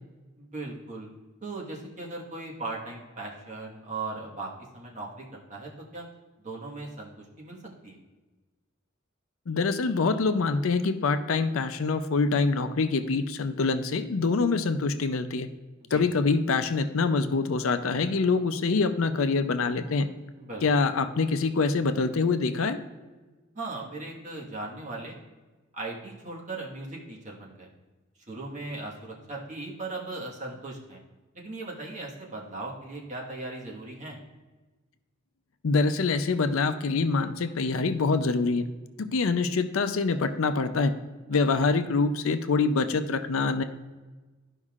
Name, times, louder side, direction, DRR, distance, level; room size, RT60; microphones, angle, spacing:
voice 1, 0.4-1.1 1.4-6.1 6.4-8.0 15.9-16.0 20.3-20.7 23.5-25.1 25.7-27.7 28.3-31.0 31.3-34.2, right 2 dB, 35° right, -3 dB, 1.5 m, -38 dB
voice 2, 9.5-15.5 15.9-20.1 20.6-22.8 35.6-38.7 39.0-40.9 41.3-43.6, left 4 dB, 75° left, 9 dB, 0.5 m, -25 dB
12.5 x 5.3 x 2.4 m, 1.2 s
head